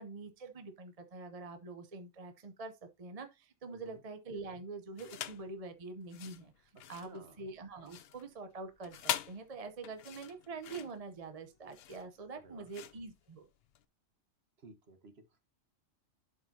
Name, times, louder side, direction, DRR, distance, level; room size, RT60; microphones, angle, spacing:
voice 1, 0.0-2.7 3.0-13.5, right 3 dB, 30° right, 0.8 m, -45 dB
voice 2, 3.7-4.0 7.0-7.4 12.4-12.7 14.6-15.4, right 3 dB, 50° right, 1.5 m, -56 dB
sound 1, 5.0-5.5 6.0-13.8, left 10 dB, 60° left, 0.7 m, -43 dB
11.5 x 5.0 x 2.8 m
omnidirectional pair, 1.4 m